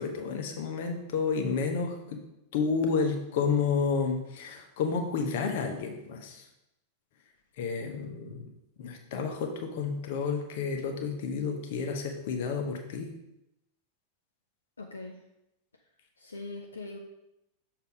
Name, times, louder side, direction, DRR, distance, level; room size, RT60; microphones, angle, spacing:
voice 1, 0.0-2.2 2.5-6.4 7.6-8.5 8.8-13.1, left 5 dB, 50° left, 4 dB, 0.9 m, -30 dB
voice 2, 14.8-15.2 16.2-17.0, left 2 dB, 75° left, 1 dB, 0.5 m, -41 dB
6.8 x 2.8 x 4.9 m, 0.87 s
figure-of-eight pair, 90°, 0 cm